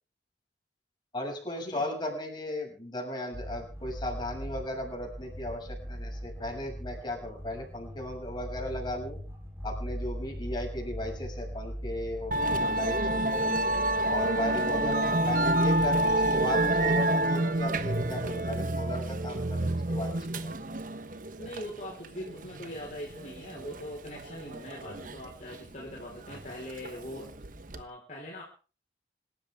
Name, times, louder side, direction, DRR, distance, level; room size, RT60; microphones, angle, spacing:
voice 1, 1.1-9.2 9.6-13.7 14.1-20.5, left 1 dB, 25° left, 1 dB, 6.8 m, -36 dB
sound 1, 3.3-17.0, equal, 15° right, 5.6 m, -40 dB
Musical instrument, 12.3-27.8, right 1 dB, 50° right, 1.2 m, -29 dB
voice 2, 21.4-27.3 27.7-28.4, left 1 dB, 40° left, -3 dB, 4.6 m, -42 dB
26.5 x 13.0 x 3.6 m, 0.37 s
head